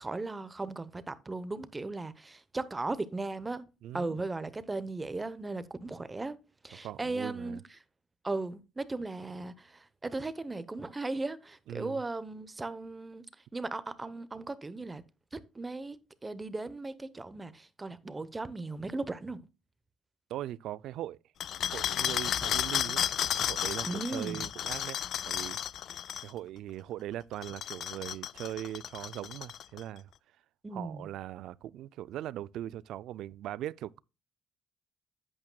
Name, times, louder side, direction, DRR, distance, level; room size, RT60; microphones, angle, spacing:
voice 1, 0.0-3.6 3.9-6.3 6.6-7.6 8.2-13.2 13.5-15.0 15.3-16.0 16.2-19.4 23.8-24.5 30.6-31.1, right 3 dB, 20° right, 0.9 m, -37 dB
voice 2, 3.8-4.2 6.8-7.6 11.7-12.0 20.3-21.2 21.7-23.0 23.4-25.0 25.2-25.6 26.2-30.1 30.7-34.0, right 13 dB, 75° right, 0.3 m, -40 dB
sound 1, 21.4-26.3 27.3-29.8, left 10 dB, 65° left, 0.3 m, -33 dB
10.5 x 8.7 x 2.3 m
cardioid pair, 105°, 0 cm